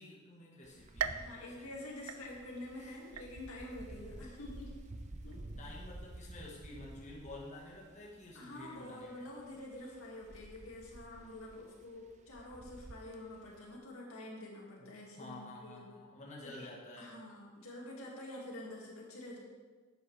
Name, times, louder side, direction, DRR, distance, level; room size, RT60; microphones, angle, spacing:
voice 1, 0.0-1.7 2.8-2.9 5.6-9.3 14.8-14.9 15.2-17.2, left 2 dB, 35° left, -4 dB, 1.3 m, -50 dB
Wind, 0.6-13.8, right 1 dB, 35° right, 0.6 m, -52 dB
sound 1, 1.0-2.7 3.2-3.7 4.2-4.3 5.3-5.4, right 8 dB, 85° right, 0.4 m, -41 dB
voice 2, 1.2-4.8 5.2-5.4 8.3-15.9 16.4-16.7 17.0-19.4, left 1 dB, 80° left, -3 dB, 2.2 m, -47 dB
10.5 x 7.6 x 3.3 m, 1.4 s
head